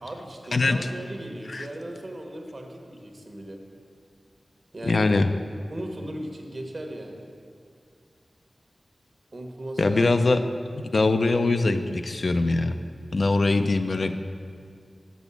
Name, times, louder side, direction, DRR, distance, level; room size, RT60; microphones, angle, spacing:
voice 1, 0.0-3.6 4.7-5.1 5.7-7.2 9.3-10.1, right 1 dB, 50° right, 2 dB, 1.1 m, -37 dB
voice 2, 4.8-5.3 9.8-10.4 10.8-12.8 13.1-14.2, left 3 dB, 65° left, 8 dB, 0.4 m, -22 dB
6.1 x 6.0 x 6.9 m, 2.3 s
wide cardioid pair, 60°, 0 cm